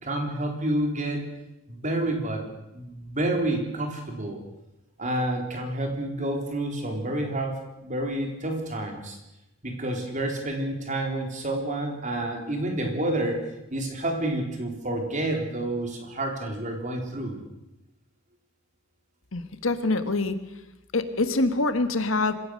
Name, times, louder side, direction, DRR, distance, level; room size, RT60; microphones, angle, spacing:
voice 1, 0.0-1.2 1.7-2.4 2.7-4.4 5.0-9.2 9.6-13.4 13.7-17.4, right 1 dB, 35° right, 2 dB, 4.1 m, -29 dB
voice 2, 19.3-20.3 20.9-22.3, left 2 dB, 70° left, 10 dB, 1.5 m, -25 dB
26.5 x 16.0 x 6.6 m, 0.91 s
head